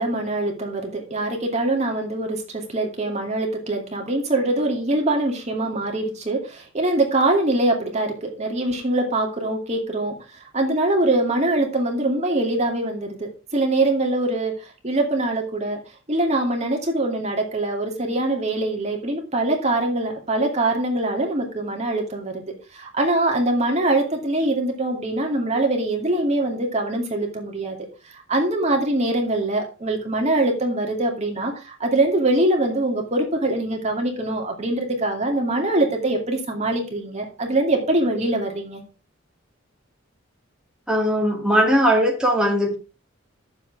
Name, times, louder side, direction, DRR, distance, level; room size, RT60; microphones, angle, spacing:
voice 1, 0.0-10.2 10.5-14.5 14.8-15.8 16.1-27.8 28.3-38.8, right 2 dB, 35° right, 1 dB, 2.5 m, -23 dB
voice 2, 40.9-42.7, equal, 5° right, -2 dB, 2.4 m, -19 dB
11.5 x 7.4 x 4.7 m, 0.33 s
head